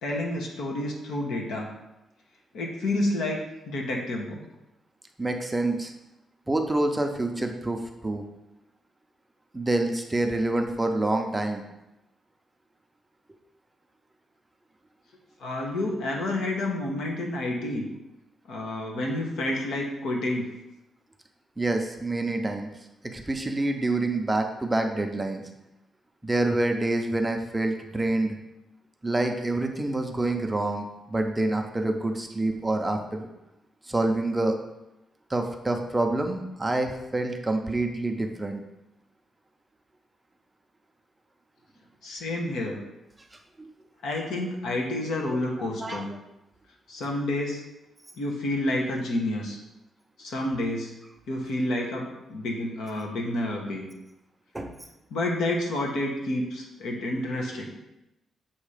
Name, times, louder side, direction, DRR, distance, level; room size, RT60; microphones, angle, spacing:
voice 1, 0.0-1.7 2.5-3.4 3.6-4.4 15.4-17.9 18.5-20.5 42.0-42.8 44.0-46.1 46.9-47.6 48.2-49.6 50.2-50.9 51.3-53.9 55.1-57.7, left 1 dB, 85° left, 0 dB, 1.2 m, -29 dB
voice 2, 5.2-5.9 6.5-8.2 9.5-11.6 21.6-22.7 23.0-25.4 26.2-28.4 29.0-33.3 33.9-34.6 35.3-38.6 43.6-43.7 45.8-46.0 54.5-54.7, right 2 dB, 10° right, 4 dB, 0.5 m, -27 dB
7.3 x 2.8 x 5.0 m, 0.92 s
cardioid pair, 150°, 0 cm